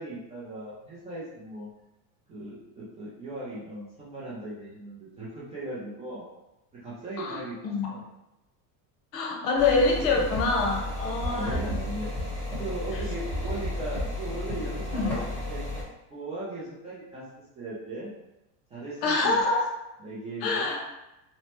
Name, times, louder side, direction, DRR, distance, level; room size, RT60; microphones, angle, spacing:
voice 1, 0.0-1.7 2.3-6.3 6.8-7.6 7.9-8.0 10.1-10.3 11.2-12.1 12.6-15.1 15.4-15.6 16.1-17.2 17.6-18.1 18.7-19.5 20.0-20.7, right 2 dB, 15° right, -8 dB, 0.3 m, -38 dB
voice 2, 7.2-7.9 9.1-11.6 14.9-15.3 19.0-19.7 20.4-20.8, left 3 dB, 85° left, 1 dB, 0.9 m, -26 dB
sound 1, 9.6-15.8, left 1 dB, 5° left, 1.1 m, -32 dB
3.1 x 2.0 x 2.9 m, 0.92 s
supercardioid pair, 145°, 48 cm